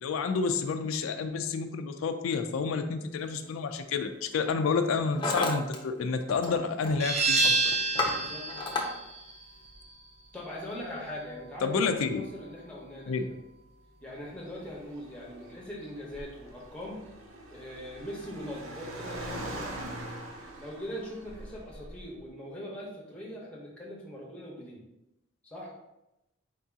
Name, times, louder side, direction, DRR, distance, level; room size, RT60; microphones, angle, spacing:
voice 1, 0.0-7.6 11.6-12.2 13.1-13.2, left 5 dB, 90° left, 7 dB, 0.4 m, -29 dB
Hammer, 3.2-3.5 4.2-4.5 4.8-5.8 6.0-6.6 6.8-7.2 7.6-8.9, left 2 dB, 25° left, 0.6 m, -32 dB
sound 1, 7.0-12.4, right 3 dB, 30° right, 0.6 m, -30 dB
voice 2, 8.0-8.5 10.3-13.3 14.0-17.1 17.5-19.8 20.4-24.8 25.4-25.7, equal, 5° left, -4 dB, 0.9 m, -41 dB
Car, 14.3-22.2, right 1 dB, 85° right, 0.7 m, -43 dB
4.7 x 2.8 x 3.5 m, 0.92 s
head